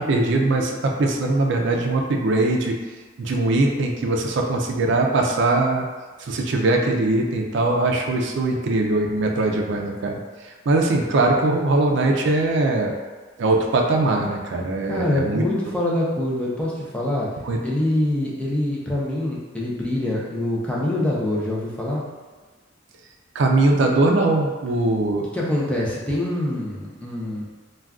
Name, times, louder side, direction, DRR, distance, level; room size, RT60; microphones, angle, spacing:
voice 1, 0.0-2.8 3.2-5.9 6.3-10.2 10.7-12.9 13.4-15.4 17.4-17.6 23.4-25.3, right 2 dB, 65° right, 1 dB, 0.4 m, -21 dB
voice 2, 14.9-17.3 17.6-22.1 25.3-27.4, left 1 dB, 5° left, -5 dB, 0.5 m, -24 dB
2.4 x 2.2 x 3.4 m, 1.3 s
head